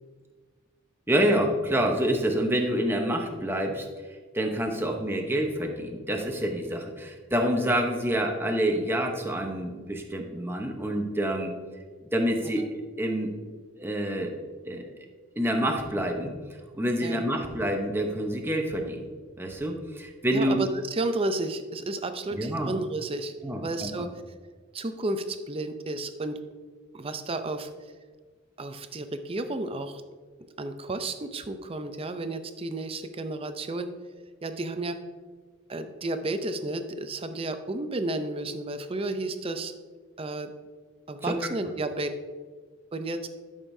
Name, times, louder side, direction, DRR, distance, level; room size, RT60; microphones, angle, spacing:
voice 1, 1.1-3.9 4.3-11.5 12.1-12.6 13.0-13.3 13.8-14.4 14.6-14.9 15.4-16.3 16.7-19.0 19.4-20.6 22.3-22.7 23.4-24.1 41.2-41.4, equal, 10° right, 2 dB, 0.9 m, -27 dB
voice 2, 17.0-17.4 20.3-23.3 23.6-24.1 24.7-26.4 26.9-27.7 28.6-30.0 30.4-33.9 34.4-35.0 35.7-39.7 40.2-40.5 41.1-42.1 42.9-43.3, right 2 dB, 25° right, 9 dB, 0.5 m, -32 dB
12.0 x 6.5 x 2.7 m, 1.5 s
head